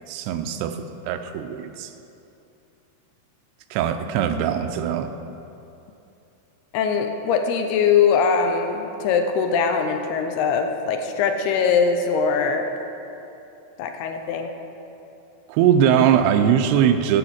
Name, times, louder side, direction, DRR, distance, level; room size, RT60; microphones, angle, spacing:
voice 1, 0.1-1.9 3.7-5.1 15.5-17.2, right 9 dB, 85° right, 8 dB, 2.6 m, -21 dB
voice 2, 6.7-12.7 13.8-14.5, left 6 dB, 85° left, 5 dB, 2.6 m, -21 dB
14.0 x 5.0 x 7.8 m, 2.8 s
omnidirectional pair, 4.8 m